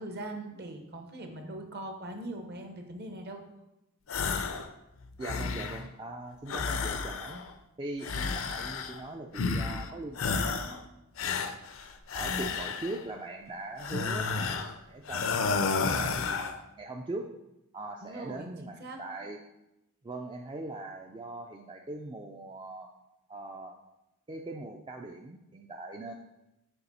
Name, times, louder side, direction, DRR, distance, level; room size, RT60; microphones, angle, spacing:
voice 1, 0.0-3.4 18.0-19.0, right 1 dB, 50° right, 4 dB, 0.9 m, -41 dB
sound 1, 4.1-4.7 5.0-5.9 6.5-7.5 8.0-9.0 9.3-9.9 10.2-10.8 11.2-13.0 13.8-14.7 15.1-16.6, left 4 dB, 65° left, 0.5 m, -31 dB
voice 2, 5.2-7.4 7.8-11.1 12.1-17.3 17.7-19.4 20.0-22.9 23.3-23.8 24.3-26.1, right 2 dB, 20° right, 1 dB, 0.3 m, -41 dB
6.7 x 4.8 x 4.2 m, 0.91 s
head